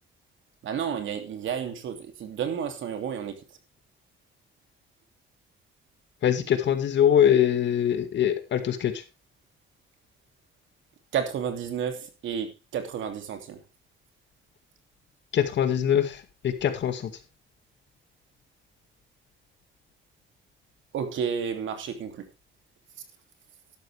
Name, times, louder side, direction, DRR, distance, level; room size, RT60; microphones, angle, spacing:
voice 1, 0.6-3.4 11.1-13.6 20.9-22.3, right 7 dB, 75° right, 3.0 m, -31 dB
voice 2, 6.2-8.9 15.3-16.2 16.4-17.1, left 9 dB, 65° left, 2.2 m, -23 dB
12.0 x 12.0 x 3.5 m
cardioid pair, 90°, 20 cm